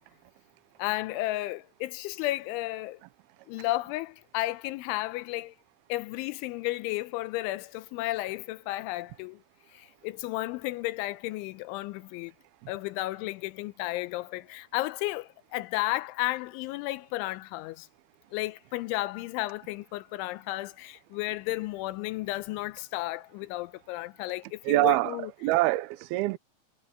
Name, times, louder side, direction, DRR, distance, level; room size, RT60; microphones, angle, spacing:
voice 1, 0.8-3.0 3.5-5.5 5.9-9.4 9.7-12.3 12.7-17.9 18.3-25.3, left 18 dB, 90° left, 3.2 m, -33 dB
voice 2, 24.6-26.4, right 18 dB, 85° right, 2.2 m, -25 dB
omnidirectional pair, 5.4 m